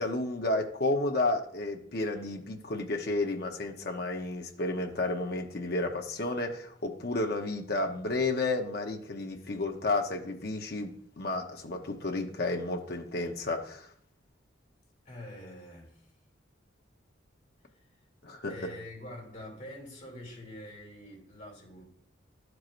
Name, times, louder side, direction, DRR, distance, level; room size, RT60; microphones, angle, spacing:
voice 1, 0.0-13.9 18.2-18.7, left 2 dB, 55° left, 0.9 m, -32 dB
voice 2, 15.0-16.1 18.5-21.8, left 1 dB, 35° left, 2.6 m, -45 dB
12.0 x 4.7 x 2.5 m
head